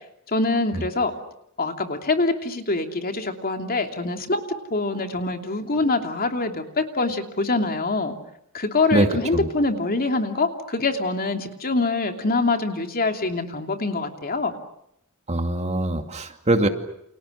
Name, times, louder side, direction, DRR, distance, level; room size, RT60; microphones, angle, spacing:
voice 1, 0.3-1.1 1.6-4.4 4.7-8.1 8.5-14.5, left 3 dB, 45° left, 4 dB, 2.9 m, -24 dB
voice 2, 8.9-9.5 15.3-16.7, right 1 dB, 30° right, 5 dB, 2.5 m, -23 dB
30.0 x 29.0 x 6.6 m, 0.79 s
head